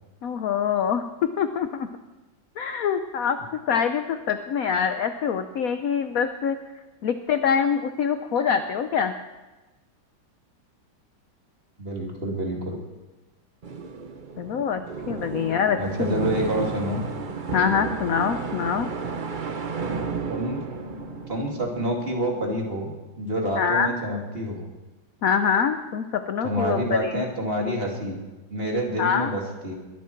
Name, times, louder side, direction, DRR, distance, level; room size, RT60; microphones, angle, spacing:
voice 1, 0.2-1.0 1.4-1.9 2.6-3.4 3.7-6.6 7.0-9.1 14.4-16.1 17.5-18.9 23.6-23.9 25.2-27.2 29.0-29.3, left 7 dB, 65° left, 9 dB, 0.9 m, -25 dB
voice 2, 11.8-12.8 15.8-17.0 20.3-20.6 21.3-24.7 26.4-28.2 28.5-29.8, right 1 dB, 30° right, -1 dB, 2.6 m, -28 dB
sound 1, 13.6-22.4, right 4 dB, 50° right, 0.5 m, -33 dB
21.5 x 12.0 x 4.5 m, 1.1 s
omnidirectional pair, 2.2 m